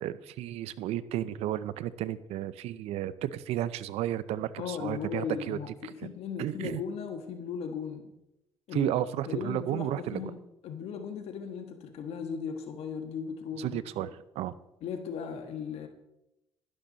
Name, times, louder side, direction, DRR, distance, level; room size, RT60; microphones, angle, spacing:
voice 1, 0.0-5.9 6.4-6.8 8.7-10.2 13.6-14.5, right 12 dB, 85° right, 16 dB, 0.6 m, -33 dB
voice 2, 4.6-8.1 8.7-8.9 9.3-10.4 10.6-14.1 14.8-15.9, left 6 dB, 80° left, 6 dB, 1.5 m, -37 dB
11.5 x 11.5 x 4.0 m, 0.89 s
cardioid pair, 95°, 10 cm